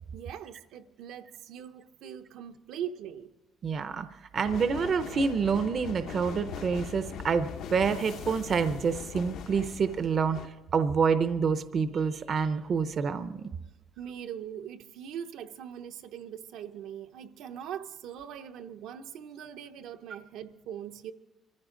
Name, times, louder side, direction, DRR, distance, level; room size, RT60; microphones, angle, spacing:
voice 1, 0.1-3.3 14.0-21.1, right 9 dB, 75° right, 0.8 m, -41 dB
voice 2, 3.6-4.1 4.3-13.5, right 5 dB, 35° right, 0.6 m, -27 dB
sound 1, 4.4-10.5, left 7 dB, 70° left, 0.9 m, -41 dB
24.5 x 15.0 x 3.8 m
cardioid pair, 165°, 0 cm